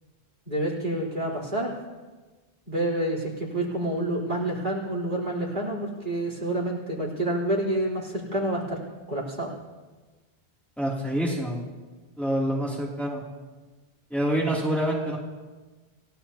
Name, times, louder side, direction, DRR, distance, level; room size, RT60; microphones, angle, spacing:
voice 1, 0.5-1.7 2.7-8.8 9.1-9.5, right 1 dB, 50° right, -4 dB, 4.2 m, -28 dB
voice 2, 10.8-11.6 12.2-13.2 14.1-15.2, right 1 dB, ahead, -5 dB, 2.8 m, -26 dB
29.0 x 16.5 x 2.9 m, 1.3 s
omnidirectional pair, 1.0 m